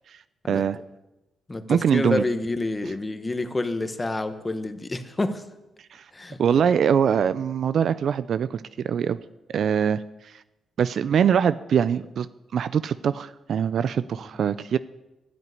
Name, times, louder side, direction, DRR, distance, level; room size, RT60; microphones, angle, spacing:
voice 1, 0.5-0.8 1.7-2.2 5.9-6.1 6.4-9.2 9.5-10.4 10.8-12.3 12.5-14.8, right 8 dB, 60° right, 15 dB, 0.4 m, -23 dB
voice 2, 1.5-5.4 6.1-6.4, left 2 dB, 20° left, 9 dB, 1.2 m, -28 dB
12.5 x 9.3 x 9.7 m, 1.0 s
cardioid pair, 110°, 0 cm